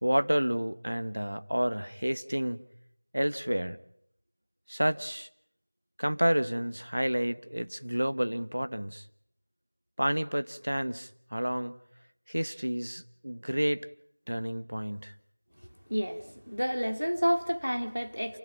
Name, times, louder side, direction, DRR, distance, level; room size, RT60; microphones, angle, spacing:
voice 1, 0.0-2.6 3.1-3.8 4.7-5.3 6.0-9.0 10.0-11.8 12.3-13.9 14.3-15.1, equal, 65° right, 1.3 m, -30 dB
voice 2, 15.9-18.4, equal, 80° right, 3.3 m, -30 dB
28.5 x 18.0 x 9.0 m
figure-of-eight pair, 175°, 0 cm